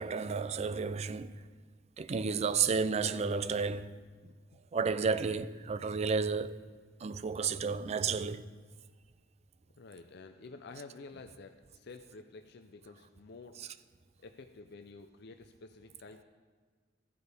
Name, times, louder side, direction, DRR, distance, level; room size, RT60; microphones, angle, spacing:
voice 1, 0.0-1.4 2.0-3.9 4.7-6.6 7.0-8.5, right 5 dB, 35° right, 0.4 m, -32 dB
voice 2, 9.8-13.6 14.2-16.2, left 3 dB, 60° left, 0.5 m, -50 dB
14.5 x 8.4 x 3.5 m
head